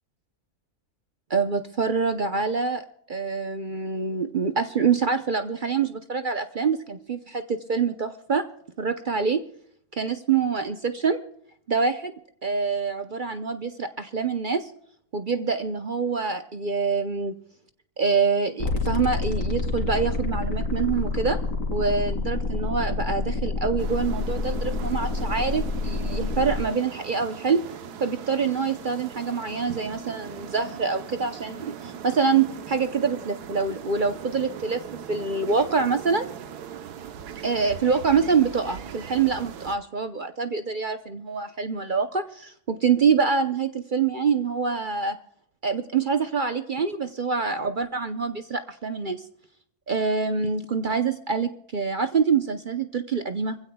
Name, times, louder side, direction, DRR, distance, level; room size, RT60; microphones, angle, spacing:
voice 1, 1.3-2.8 3.1-8.4 8.8-9.4 9.9-11.2 11.7-12.1 12.4-14.7 15.1-17.4 18.0-21.4 21.7-27.6 28.0-34.8 35.1-36.3 37.4-45.2 45.6-49.2 49.9-53.6, right 5 dB, 45° right, 8 dB, 0.7 m, -25 dB
sound 1, 18.6-26.6, left 3 dB, 55° left, 2.7 m, -28 dB
sound 2, 23.8-39.8, right 8 dB, 80° right, 1.4 m, -40 dB
25.5 x 16.0 x 2.3 m, 0.69 s
omnidirectional pair, 1.7 m